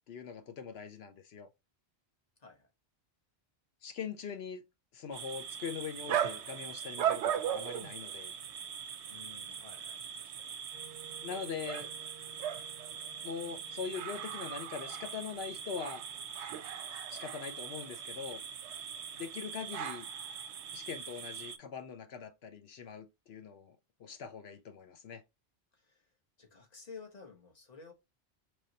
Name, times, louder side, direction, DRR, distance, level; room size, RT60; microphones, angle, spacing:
voice 1, 0.1-1.5 3.8-4.6 4.9-8.3 11.2-11.9 13.2-16.0 17.1-18.4 19.1-20.1 20.7-25.2, left 6 dB, 70° left, 1.0 m, -42 dB
voice 2, 2.4-2.7 9.1-10.6 25.7-26.1 26.4-27.9, left 4 dB, 40° left, 1.1 m, -53 dB
sound 1, 5.1-21.6, right 9 dB, 90° right, 0.9 m, -39 dB
Wind instrument woodwind instrument, 10.7-16.8, right 6 dB, 65° right, 0.7 m, -57 dB
4.6 x 3.1 x 2.7 m
omnidirectional pair, 1.1 m